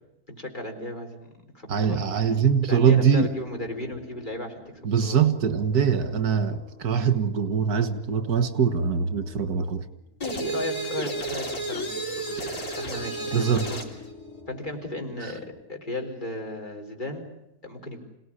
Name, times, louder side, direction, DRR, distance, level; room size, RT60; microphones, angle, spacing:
voice 1, 0.3-1.3 1.5-2.0 2.6-5.2 10.2-13.8 14.5-17.3 17.6-18.0, left 1 dB, 30° left, 4.4 m, -35 dB
voice 2, 1.7-3.3 4.8-9.9 12.4-12.5 13.3-13.7, right 7 dB, 85° right, 1.9 m, -23 dB
sound 1, 2.0-15.6, left 3 dB, 30° right, 3.3 m, -49 dB
sound 2, 10.2-14.0, right 2 dB, 55° left, 3.8 m, -32 dB
28.0 x 18.0 x 9.9 m
omnidirectional pair, 1.6 m